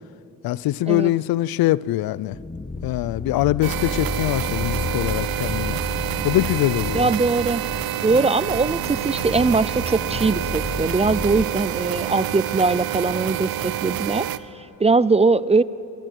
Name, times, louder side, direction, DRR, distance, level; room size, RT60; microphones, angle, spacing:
voice 1, 0.4-2.4 2.8-5.8 6.2-7.1, left 15 dB, 80° left, 21 dB, 0.5 m, -23 dB
sound 1, 2.3-11.5, left 3 dB, 15° left, 1.1 m, -32 dB
sound 2, 3.6-14.4, right 13 dB, 80° right, 0.7 m, -28 dB
sound 3, 6.4-14.0, equal, ahead, 6.4 m, -45 dB
voice 2, 6.9-7.7 8.0-14.3 14.5-15.6, right 3 dB, 20° right, 19 dB, 0.4 m, -21 dB
25.0 x 14.0 x 7.9 m, 2.8 s
cardioid pair, 70°, 35 cm